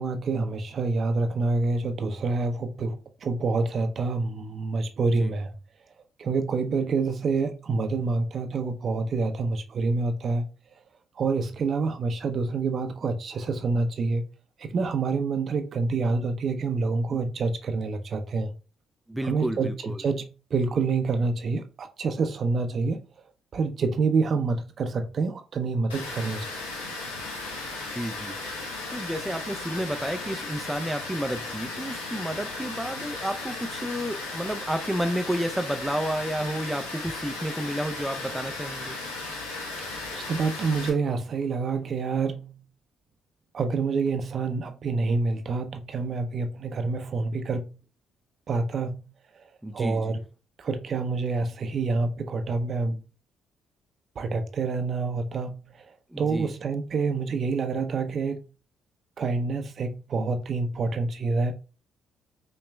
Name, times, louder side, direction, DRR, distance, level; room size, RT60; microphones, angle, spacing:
voice 1, 0.0-5.5 6.2-10.4 11.2-14.2 14.6-18.5 19.2-20.2 20.5-23.1 23.5-26.6 39.8-42.5 43.5-47.7 48.5-49.0 49.3-49.4 49.7-50.2 50.6-53.0 54.2-55.9 56.2-58.4 59.2-61.5, right 4 dB, 50° right, 0.6 m, -27 dB
voice 2, 19.1-20.0 28.0-28.4 28.9-39.0 49.6-50.1 56.1-56.5, equal, 5° right, 0.5 m, -31 dB
Water, 25.9-40.9, left 3 dB, 90° left, 0.8 m, -36 dB
5.7 x 3.1 x 2.2 m
hypercardioid pair, 45°, 0 cm